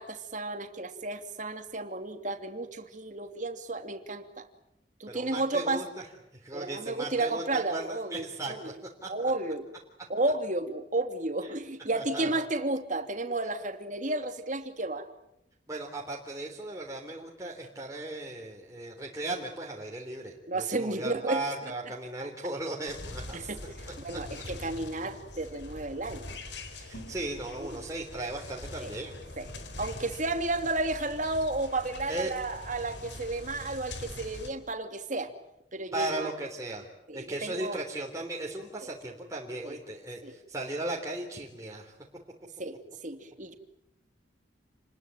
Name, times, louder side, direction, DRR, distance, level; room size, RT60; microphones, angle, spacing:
voice 1, 0.0-4.5 5.0-5.8 6.5-8.7 9.1-9.6 10.1-15.1 20.5-21.5 23.3-23.6 24.0-26.3 27.6-27.8 28.8-28.9 29.4-29.5 29.8-35.3 35.7-36.3 37.1-37.8 38.8-38.9 39.6-39.8 40.2-40.3 42.6-43.5, right 2 dB, 40° right, 7 dB, 2.8 m, -32 dB
voice 2, 5.1-6.1 6.3-9.1 11.9-12.4 15.7-23.5 23.9-24.0 26.8-29.2 32.1-32.3 35.9-36.9 37.1-41.9, right 2 dB, 15° right, -1 dB, 3.6 m, -37 dB
sound 1, 22.9-34.5, left 2 dB, 65° left, 4.2 m, -43 dB
29.5 x 21.0 x 9.2 m, 0.84 s
head